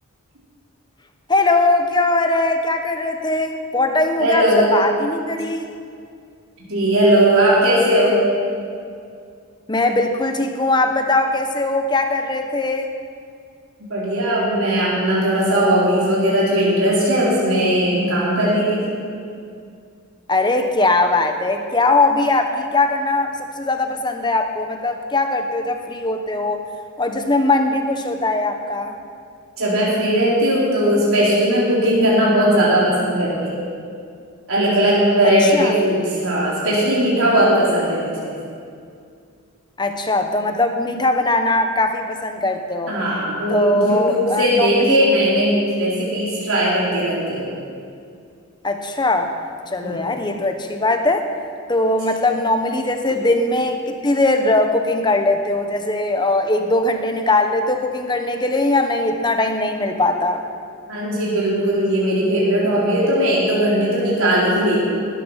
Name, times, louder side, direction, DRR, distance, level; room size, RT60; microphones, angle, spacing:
voice 1, 1.3-5.6 9.7-12.9 20.3-26.6 27.0-28.9 35.2-35.7 39.8-42.9 43.5-45.0 48.6-49.3 49.7-51.3 51.7-60.4, left 2 dB, 20° left, 5 dB, 1.1 m, -20 dB
voice 2, 4.2-4.8 6.7-8.2 13.9-18.8 29.6-33.3 34.5-38.3 42.9-47.5 49.8-50.0 60.9-64.9, equal, 85° right, -7 dB, 4.2 m, -18 dB
20.5 x 10.5 x 5.8 m, 2.3 s
head